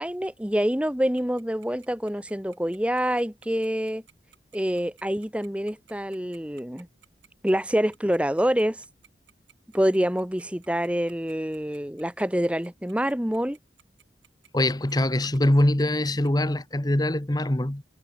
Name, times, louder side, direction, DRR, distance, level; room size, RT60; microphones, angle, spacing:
voice 1, 0.0-4.0 4.5-6.9 7.4-8.8 9.7-13.6, equal, 5° right, 1.1 m, -26 dB
Tick-tock, 1.2-16.3, right 9 dB, 85° right, 4.3 m, -55 dB
voice 2, 14.5-17.8, left 1 dB, 20° left, 1.1 m, -23 dB
head